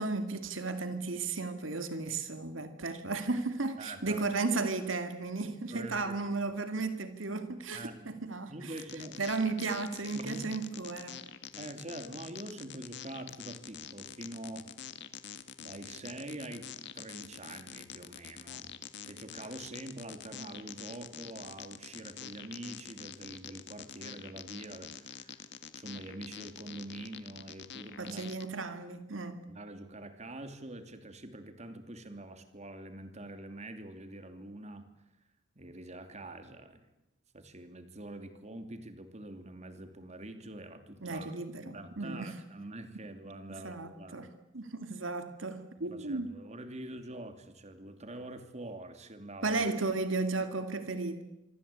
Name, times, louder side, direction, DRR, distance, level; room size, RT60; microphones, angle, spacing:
voice 1, 0.0-8.7 9.2-11.2 28.0-29.4 41.0-42.3 43.6-44.3 44.5-46.3 49.4-51.2, right 3 dB, 80° right, 8 dB, 2.3 m, -34 dB
voice 2, 3.8-4.3 5.7-6.1 7.7-8.1 8.5-9.2 10.1-10.5 11.5-14.7 15.6-18.7 19.0-25.5 25.7-28.2 29.5-34.9 35.6-36.8 37.3-41.3 41.6-44.3 45.9-49.6, right 1 dB, 35° right, 8 dB, 2.7 m, -45 dB
sound 1, 8.8-28.4, left 8 dB, 60° left, 1.8 m, -46 dB
26.0 x 24.5 x 8.6 m, 0.90 s
head